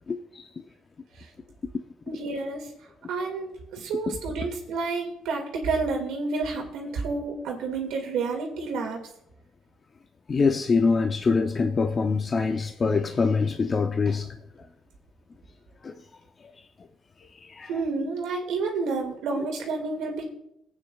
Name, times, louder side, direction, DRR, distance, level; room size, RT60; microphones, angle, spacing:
voice 1, 0.1-0.5 4.1-4.2 10.3-14.4 15.8-15.9 16.4-16.5 17.3-17.7, left 4 dB, 40° left, 0.6 m, -24 dB
voice 2, 2.1-2.7 3.1-9.0 17.7-20.3, right 4 dB, 90° right, 2.2 m, -30 dB
17.5 x 8.9 x 2.4 m
cardioid pair, 90°, 0 cm